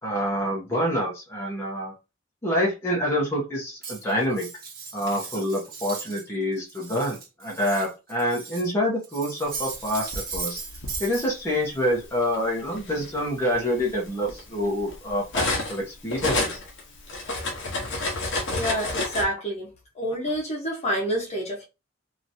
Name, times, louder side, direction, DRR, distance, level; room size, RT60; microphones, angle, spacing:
voice 1, 0.0-1.9 2.4-4.5 4.9-10.6 11.0-16.6, equal, 15° left, 1.1 m, -27 dB
Cutlery silverware, 3.8-6.3 6.6-8.7 9.0-11.3, right 5 dB, 50° right, 1.2 m, -37 dB
Cutlery silverware 2, 9.7-11.0 12.0-12.1 12.6-15.8 16.1-19.2, left 2 dB, 65° left, 1.1 m, -30 dB
voice 2, 17.6-18.1 18.5-21.7, equal, 35° left, 1.2 m, -29 dB
3.0 x 3.0 x 2.7 m
head